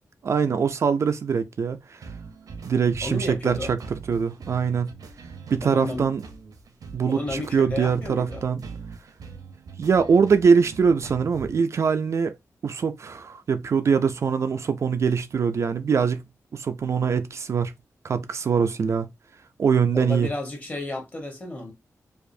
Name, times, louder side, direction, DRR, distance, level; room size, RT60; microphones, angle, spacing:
voice 1, 0.2-2.1 2.6-4.9 5.5-6.2 6.9-8.6 9.8-12.4 12.6-16.2 16.5-17.7 18.0-19.1 19.6-20.3, right 6 dB, 50° right, 0.3 m, -23 dB
sound 1, 2.0-11.6, right 4 dB, 80° right, 0.7 m, -42 dB
voice 2, 3.0-3.7 5.6-6.1 7.1-8.4 19.9-21.7, left 2 dB, 30° left, 1.1 m, -32 dB
4.6 x 2.5 x 2.6 m
wide cardioid pair, 160°, 6 cm